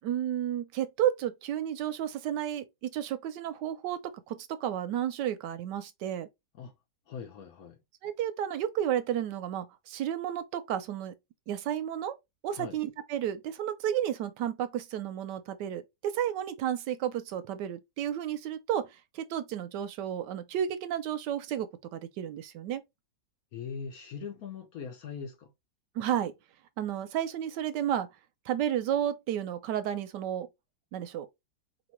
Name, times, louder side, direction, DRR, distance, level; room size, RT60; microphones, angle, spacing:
voice 1, 0.0-6.3 8.0-11.1 11.5-12.2 12.4-22.8 26.0-26.3 26.8-28.1 28.5-30.5 30.9-31.3, right 10 dB, 75° right, 1.1 m, -32 dB
voice 2, 7.1-7.8 12.5-12.8 23.5-25.5, left 6 dB, 60° left, 1.1 m, -41 dB
4.6 x 3.0 x 2.9 m
omnidirectional pair, 2.0 m